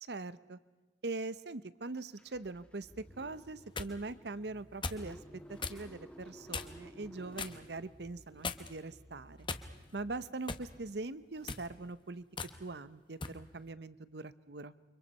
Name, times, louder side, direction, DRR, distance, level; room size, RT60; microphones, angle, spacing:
voice 1, 0.1-0.6 1.0-5.2 5.5-9.5 9.9-12.2 12.6-14.7, right 3 dB, 65° right, 16 dB, 0.9 m, -42 dB
Car / Engine starting, 2.2-10.9, equal, 5° left, 2.1 m, -55 dB
sound 1, 3.4-3.9 4.8-5.1 5.6-5.8 6.5-6.9 7.4-7.6 8.4-8.8 9.5-10.0 10.5-10.7 11.4-11.7 12.4-12.5 13.2-13.4, left 4 dB, 25° left, 1.1 m, -39 dB
29.5 x 25.0 x 5.5 m, 1.2 s
head